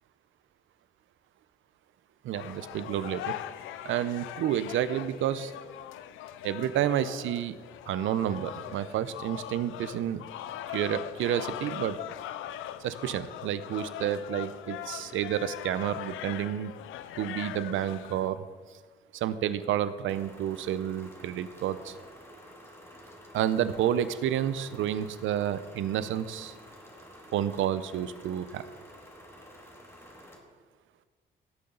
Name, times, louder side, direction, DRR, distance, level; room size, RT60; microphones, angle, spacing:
voice 1, 2.2-3.3 3.8-5.5 6.4-7.6 7.9-10.2 10.7-12.0 12.8-16.7 17.2-18.4 19.1-22.0 23.3-26.5 27.3-28.6, right 10 dB, 80° right, 13 dB, 0.7 m, -30 dB
sound 1, 2.3-18.3, left 12 dB, 90° left, 0.5 m, -41 dB
sound 2, 20.1-30.4, equal, 10° left, 2.4 m, -50 dB
17.0 x 6.9 x 3.9 m, 1.5 s
cardioid pair, 90°, 20 cm